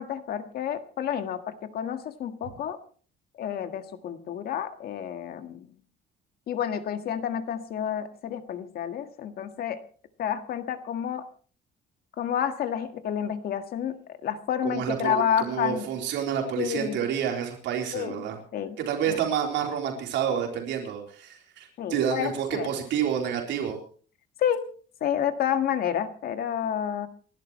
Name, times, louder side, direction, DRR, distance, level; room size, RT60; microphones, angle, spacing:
voice 1, 0.0-2.8 3.4-5.7 6.5-9.8 10.2-11.3 12.2-15.9 16.6-17.0 17.9-18.2 18.5-18.8 19.1-19.2 21.8-22.7 24.4-24.6 25.0-27.1, left 9 dB, 55° left, 8 dB, 1.7 m, -29 dB
voice 2, 14.6-18.4 18.8-23.8, right 8 dB, 75° right, 2 dB, 3.9 m, -29 dB
29.0 x 12.0 x 3.2 m, 0.42 s
cardioid pair, 160°, 19 cm